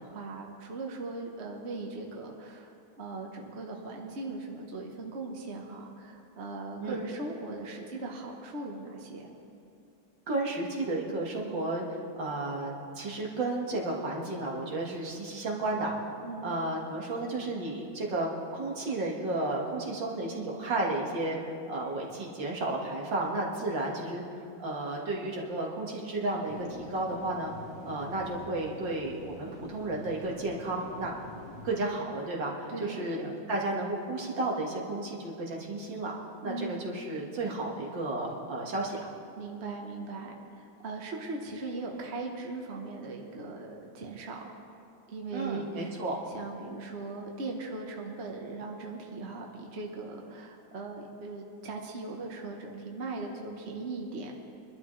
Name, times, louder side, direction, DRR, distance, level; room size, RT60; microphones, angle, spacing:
voice 1, 0.0-9.3 16.2-16.5 32.7-33.3 36.4-36.9 39.4-44.5 45.1-46.0 46.3-54.4, right 3 dB, 40° right, 0 dB, 1.1 m, -39 dB
voice 2, 10.3-15.9 16.4-21.4 21.7-24.2 24.6-27.5 27.9-31.1 31.6-36.1 36.4-39.1 45.3-46.2, right 2 dB, 60° right, -2 dB, 2.4 m, -33 dB
sound 1, 26.4-31.8, left 2 dB, 50° left, 2.1 m, -47 dB
23.5 x 12.0 x 3.2 m, 2.6 s
omnidirectional pair, 2.3 m